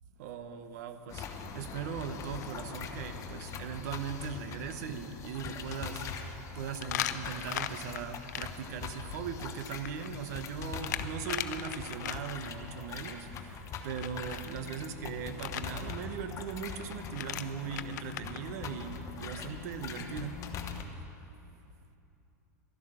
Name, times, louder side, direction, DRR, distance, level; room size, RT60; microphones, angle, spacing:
voice 1, 0.2-20.4, right 6 dB, 65° right, 9 dB, 1.1 m, -39 dB
sound 1, 1.1-20.8, left 6 dB, 35° left, 1.1 m, -42 dB
sound 2, 1.9-2.1 2.4-2.5 3.1-3.2 3.4-3.5 6.8-8.4 9.7-12.5 14.0-14.5 15.4-15.6 16.8-16.9 17.1-18.4, left 12 dB, 75° left, 0.6 m, -37 dB
12.0 x 11.0 x 6.4 m, 2.9 s
hypercardioid pair, 125°, 9 cm